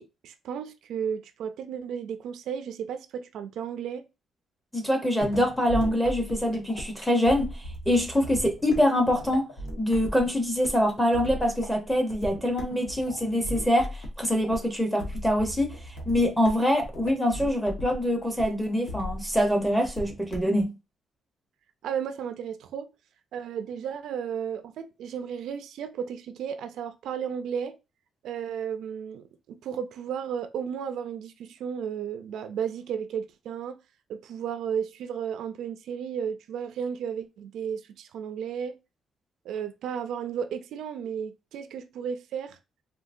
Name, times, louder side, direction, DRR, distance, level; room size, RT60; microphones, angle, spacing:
voice 1, 0.0-4.1 21.8-22.9 23.3-27.8 28.2-33.8 34.1-38.8 39.4-42.6, right 7 dB, 75° right, 0.3 m, -34 dB
voice 2, 4.7-9.5 9.8-15.8 16.1-20.7, equal, 5° left, 0.7 m, -25 dB
sound 1, 5.2-20.6, equal, 85° left, 1.1 m, -37 dB
3.7 x 2.3 x 2.5 m
cardioid pair, 170°, 0 cm